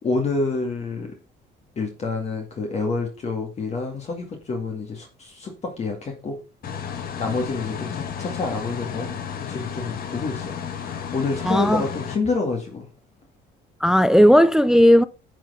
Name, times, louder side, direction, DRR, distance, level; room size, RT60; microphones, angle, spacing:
voice 1, 0.0-1.1 1.8-6.4 7.2-9.2 9.5-12.9, left 3 dB, 35° left, 2.0 m, -28 dB
sound 1, 6.6-12.2, left 7 dB, 50° left, 1.6 m, -33 dB
voice 2, 11.5-11.9 13.8-15.0, equal, 5° right, 0.4 m, -15 dB
10.5 x 4.3 x 5.6 m
cardioid pair, 150°, 19 cm